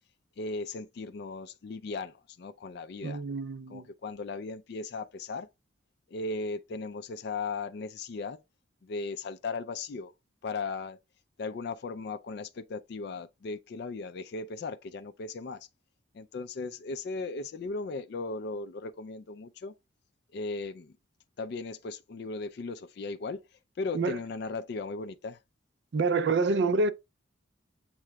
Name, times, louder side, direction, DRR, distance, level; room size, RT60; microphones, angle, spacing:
voice 1, 0.4-3.2 3.7-5.5 6.1-8.4 8.8-10.1 10.4-11.0 11.4-15.7 16.1-19.7 20.3-20.9 21.4-23.4 23.8-25.4, left 3 dB, 55° left, 0.3 m, -37 dB
voice 2, 3.0-3.9 23.9-24.2 25.9-26.9, right 3 dB, 60° right, 0.4 m, -27 dB
7.5 x 3.0 x 2.2 m
head